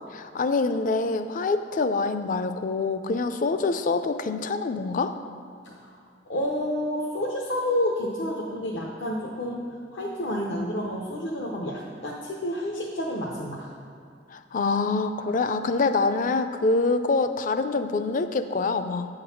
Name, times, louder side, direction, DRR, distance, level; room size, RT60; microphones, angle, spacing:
voice 1, 0.2-5.1 14.3-19.1, left 3 dB, 45° left, 9 dB, 0.4 m, -25 dB
voice 2, 5.6-6.0 6.3-13.7, left 1 dB, 80° left, -3 dB, 0.8 m, -29 dB
9.2 x 3.9 x 6.9 m, 2.3 s
head